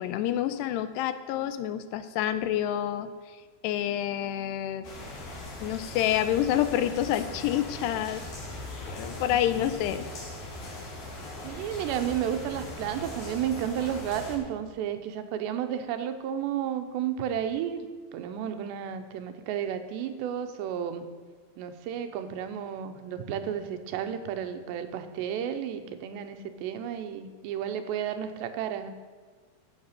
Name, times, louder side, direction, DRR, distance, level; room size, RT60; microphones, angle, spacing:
voice 1, 0.0-3.1 3.6-4.9 5.6-8.2 8.9-10.1, left 11 dB, 85° left, 12 dB, 2.7 m, -28 dB
sound 1, 4.8-14.4, left 1 dB, 60° left, 4.6 m, -40 dB
voice 2, 11.4-21.0 21.6-28.9, right 9 dB, 85° right, 8 dB, 3.1 m, -32 dB
14.5 x 7.9 x 6.7 m, 1.5 s
omnidirectional pair, 4.9 m